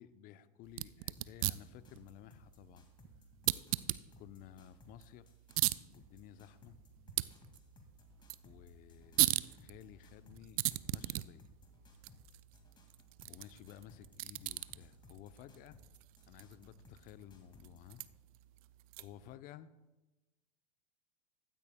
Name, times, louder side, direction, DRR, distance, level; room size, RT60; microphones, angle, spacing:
voice 1, 0.0-2.8 4.2-5.3 5.9-6.8 8.4-11.5 13.3-15.8 16.3-18.0 19.0-19.7, left 11 dB, 45° left, 13 dB, 0.6 m, -55 dB
sound 1, 0.7-19.3, right 19 dB, 60° right, 0.4 m, -40 dB
sound 2, 1.2-18.0, left 3 dB, 20° left, 2.1 m, -62 dB
15.5 x 12.5 x 2.3 m, 1.1 s
hypercardioid pair, 90°, 21 cm